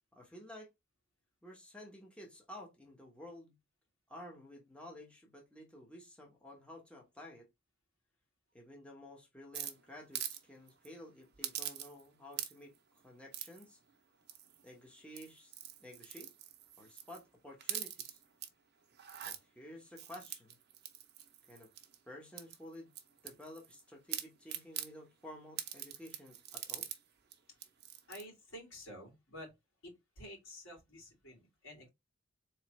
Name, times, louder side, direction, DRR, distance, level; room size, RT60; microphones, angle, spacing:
voice 1, 0.1-0.7 1.4-3.5 4.1-7.5 8.5-12.7 13.0-13.8 14.6-15.5 15.8-16.3 16.8-18.2 19.2-20.6 21.5-21.7 22.1-22.9 23.2-26.9, left 1 dB, 5° left, 1.1 m, -52 dB
sound 1, 9.5-10.4 10.7-10.9 11.4-12.1 12.3-12.8 13.3-13.6 14.3-14.7 15.1-17.2 17.6-18.5 18.9-19.4 20.0-22.0 22.4-23.8 24.1-24.9 25.6-27.0 27.3-27.4 27.6-28.2, right 11 dB, 55° right, 0.7 m, -43 dB
voice 2, 28.1-29.5 29.8-31.9, equal, 85° left, 2.8 m, -50 dB
3.9 x 3.2 x 3.1 m
head